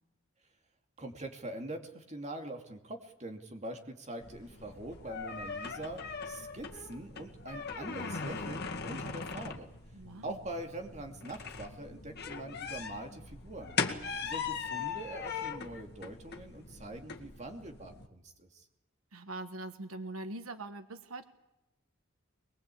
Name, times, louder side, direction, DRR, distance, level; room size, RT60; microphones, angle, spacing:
voice 1, 1.0-9.7 10.2-13.8 14.2-18.7, right 1 dB, 35° right, 4 dB, 2.8 m, -43 dB
sound 1, 4.2-18.1, left 5 dB, 50° left, 2.1 m, -40 dB
voice 2, 9.9-10.4 19.1-21.2, right 2 dB, 85° right, 9 dB, 1.4 m, -42 dB
23.5 x 21.5 x 8.6 m, 0.93 s
head